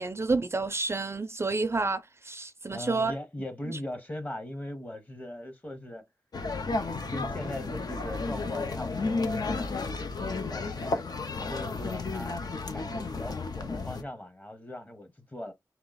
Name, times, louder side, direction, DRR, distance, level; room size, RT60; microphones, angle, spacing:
voice 1, 0.0-3.1 3.7-3.8, right 3 dB, 35° right, 0.4 m, -29 dB
voice 2, 2.7-6.0 6.6-9.7 10.5-12.4 12.7-15.5, left 1 dB, 20° left, 0.9 m, -40 dB
sound 1, 6.3-14.0, left 3 dB, 70° left, 0.6 m, -32 dB
3.3 x 3.0 x 3.9 m
wide cardioid pair, 100°, 7 cm